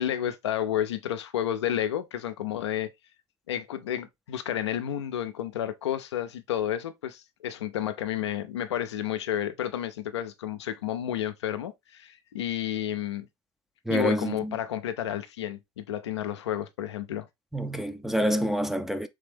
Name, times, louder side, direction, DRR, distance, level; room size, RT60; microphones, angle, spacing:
voice 1, 0.0-2.9 3.5-13.3 13.9-17.3, left 10 dB, 85° left, 0.5 m, -31 dB
voice 2, 13.9-14.6 17.5-19.1, equal, ahead, 0.4 m, -27 dB
3.5 x 3.3 x 3.4 m
hypercardioid pair, 80°, 14 cm